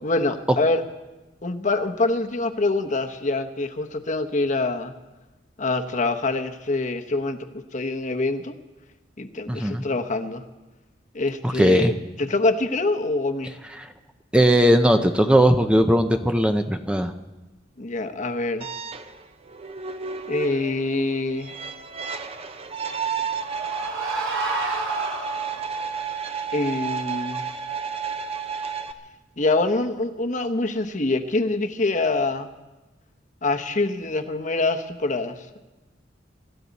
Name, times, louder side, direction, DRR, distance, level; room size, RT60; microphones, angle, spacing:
voice 1, 0.0-0.8 1.4-4.9 5.6-8.5 9.2-10.4 11.1-13.5 17.8-18.7 20.3-21.6 26.5-27.4 29.4-32.5 33.4-35.6, left 2 dB, 40° left, 6 dB, 1.0 m, -25 dB
voice 2, 9.5-9.8 11.4-11.9 13.8-13.9 14.3-17.1, equal, 5° right, 7 dB, 0.6 m, -19 dB
sound 1, 18.6-28.9, right 6 dB, 30° right, 0.8 m, -31 dB
sound 2, 22.9-25.9, right 1 dB, 90° right, 3.1 m, -31 dB
26.0 x 13.5 x 4.1 m, 1.1 s
head